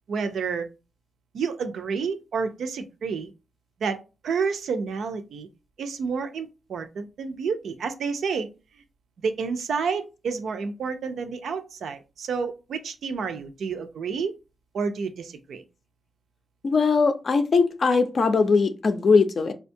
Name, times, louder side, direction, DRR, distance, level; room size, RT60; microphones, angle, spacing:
voice 1, 0.1-0.7 1.3-3.3 3.8-5.5 5.8-8.5 9.2-14.4 14.7-15.6, right 5 dB, 75° right, 8 dB, 0.4 m, -29 dB
voice 2, 16.6-19.5, left 4 dB, 45° left, 8 dB, 0.4 m, -20 dB
4.3 x 2.2 x 2.6 m, 0.30 s
wide cardioid pair, 145°, 0 cm